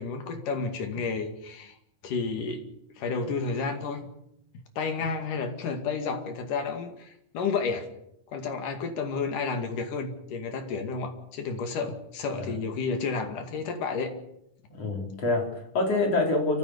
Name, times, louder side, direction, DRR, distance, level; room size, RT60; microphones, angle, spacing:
voice 1, 0.0-1.8 2.0-2.7 3.0-4.1 4.8-7.9 8.3-14.1, left 4 dB, 75° left, 5 dB, 3.9 m, -31 dB
voice 2, 14.7-16.6, left 2 dB, 45° left, 1 dB, 5.1 m, -26 dB
29.0 x 15.0 x 6.9 m, 0.78 s
omnidirectional pair, 3.8 m